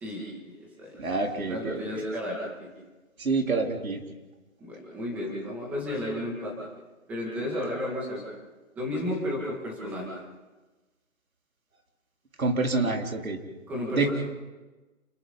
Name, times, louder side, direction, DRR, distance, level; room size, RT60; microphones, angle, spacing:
voice 1, 0.0-1.1 1.4-2.4 4.6-6.5 7.1-8.4 8.8-10.1 13.7-14.1, left 1 dB, 5° right, -4 dB, 2.2 m, -33 dB
voice 2, 1.0-2.0 3.2-4.0 12.4-13.4 13.9-14.1, right 3 dB, 80° right, 2 dB, 3.9 m, -27 dB
29.5 x 20.0 x 5.7 m, 1.2 s
hypercardioid pair, 170°, 41 cm